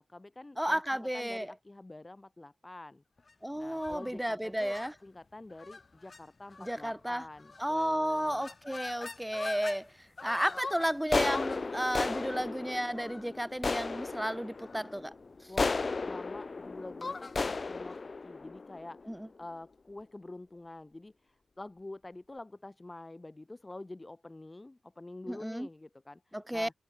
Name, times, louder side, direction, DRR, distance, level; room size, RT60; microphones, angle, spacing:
voice 1, 0.0-3.0 3.5-4.8 5.0-8.5 15.5-18.0 18.2-26.7, left 2 dB, 25° left, 4.4 m, -47 dB
voice 2, 0.6-1.5 3.4-4.9 6.6-7.2 7.6-9.9 10.2-15.1 19.1-19.2 25.3-25.7 26.3-26.7, equal, 5° right, 0.5 m, -33 dB
sound 1, 3.7-4.1 4.6-4.9 5.6-5.8 6.1-6.2 6.5-6.9 7.5-7.8 8.1-9.8 10.2-19.4, left 3 dB, 45° left, 0.5 m, -36 dB
supercardioid pair, 40°, 0 cm